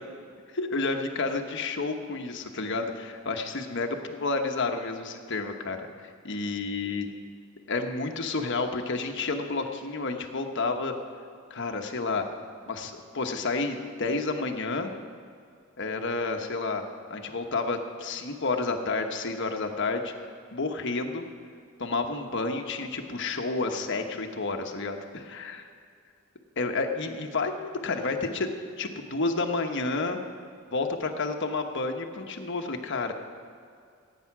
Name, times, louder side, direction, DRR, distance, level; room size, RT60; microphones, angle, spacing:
voice 1, 0.5-7.1 7.7-10.9 11.5-12.2 12.7-14.9 15.8-16.8 17.1-20.1 20.5-21.2 21.8-25.6 26.6-28.5 28.8-30.2 30.7-33.1, left 3 dB, 60° left, 4 dB, 1.2 m, -30 dB
16.0 x 9.3 x 6.1 m, 2.3 s
head